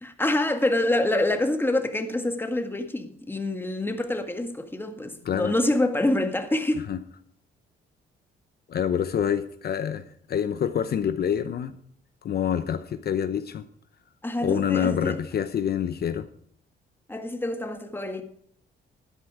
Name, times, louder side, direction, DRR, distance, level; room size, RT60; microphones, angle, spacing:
voice 1, 0.0-6.9 14.2-15.2 17.1-18.2, left 1 dB, 10° left, 1.8 m, -26 dB
voice 2, 8.7-10.0 10.3-11.7 12.2-13.6 14.4-16.3, left 8 dB, 55° left, 0.8 m, -26 dB
12.5 x 10.5 x 4.9 m
cardioid pair, 90°, 20 cm